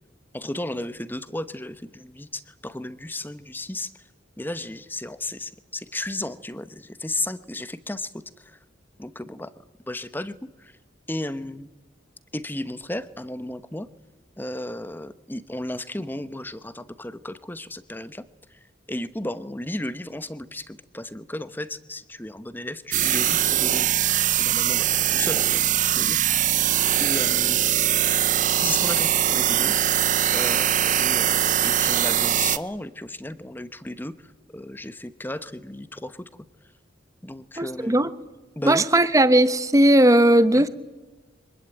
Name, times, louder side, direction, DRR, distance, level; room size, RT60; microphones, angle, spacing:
voice 1, 0.3-3.9 4.4-8.1 8.4-8.6 9.0-9.5 9.9-10.3 10.6-10.7 11.1-11.7 12.3-13.9 14.4-18.2 18.9-26.2 27.0-27.7 28.6-29.7 30.3-34.1 34.5-36.2 37.2-38.1 38.6-38.9 40.5-40.7, left 1 dB, 10° left, 14 dB, 0.9 m, -34 dB
sound 1, 22.9-32.6, right 11 dB, 40° right, 0.7 m, -22 dB
voice 2, 37.6-38.1 38.6-40.7, right 1 dB, 15° right, 13 dB, 0.9 m, -17 dB
25.0 x 20.5 x 9.1 m, 1.2 s
head